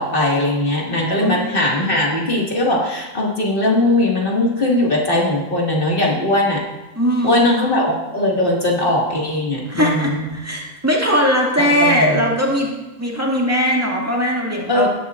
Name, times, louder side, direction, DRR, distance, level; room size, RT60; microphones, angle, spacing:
voice 1, 0.0-6.6 7.2-10.3 11.6-12.2 14.7-14.9, left 1 dB, 40° left, -3 dB, 2.3 m, -19 dB
voice 2, 7.0-7.7 9.7-12.7 13.0-14.9, equal, 10° right, -4 dB, 2.1 m, -19 dB
17.0 x 11.0 x 2.5 m, 1.1 s
omnidirectional pair, 1.4 m